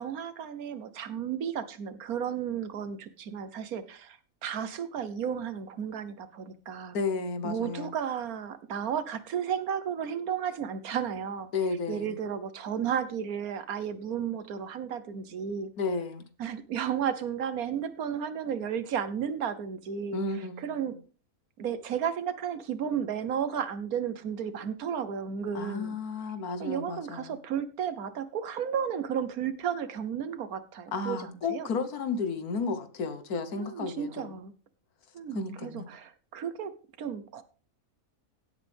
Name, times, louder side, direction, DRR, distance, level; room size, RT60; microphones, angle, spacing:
voice 1, 0.0-7.0 7.4-11.5 11.9-15.7 16.4-21.0 21.6-26.0 26.6-31.7 33.6-34.5 35.1-36.7 37.0-37.4, right 8 dB, 80° right, 1.5 m, -33 dB
voice 2, 6.9-7.9 11.5-12.2 15.8-16.2 20.1-20.6 25.5-27.3 30.9-34.3 35.3-35.9, left 4 dB, 90° left, 1.7 m, -32 dB
16.0 x 8.1 x 3.5 m
omnidirectional pair, 1.5 m